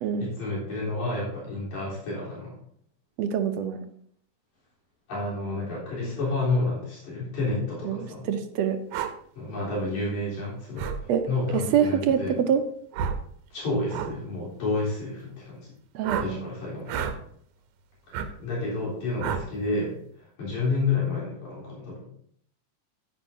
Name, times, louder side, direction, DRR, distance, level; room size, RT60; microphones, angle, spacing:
voice 1, 0.2-2.5 5.1-8.3 9.4-10.8 11.3-12.4 13.5-15.7 16.1-17.0 18.4-20.0 20.4-22.0, left 3 dB, 75° left, -6 dB, 5.0 m, -30 dB
voice 2, 3.2-3.8 7.8-8.8 11.1-11.2 11.5-12.2 12.5-12.6 16.0-16.4, right 8 dB, 75° right, 8 dB, 1.7 m, -25 dB
sound 1, 8.9-9.1 10.8-11.0 12.9-13.2 13.9-14.1 16.0-16.3 16.9-17.2 18.1-18.3 19.2-19.5, right 7 dB, 90° right, 2.2 m, -30 dB
11.0 x 10.0 x 2.7 m, 0.65 s
omnidirectional pair, 3.3 m